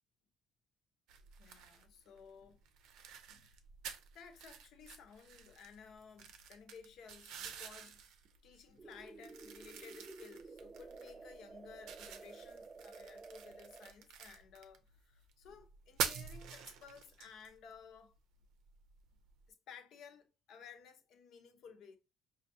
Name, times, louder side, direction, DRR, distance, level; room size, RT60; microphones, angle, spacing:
sound 1, 1.1-19.5, right 7 dB, 85° right, 0.5 m, -47 dB
voice 1, 1.4-2.6 3.3-3.6 4.1-8.0 8.4-18.1 19.7-22.0, left 6 dB, 65° left, 0.8 m, -56 dB
sound 2, 8.8-13.9, right 4 dB, 25° right, 0.4 m, -53 dB
5.1 x 2.4 x 2.7 m
cardioid pair, 120°, 0 cm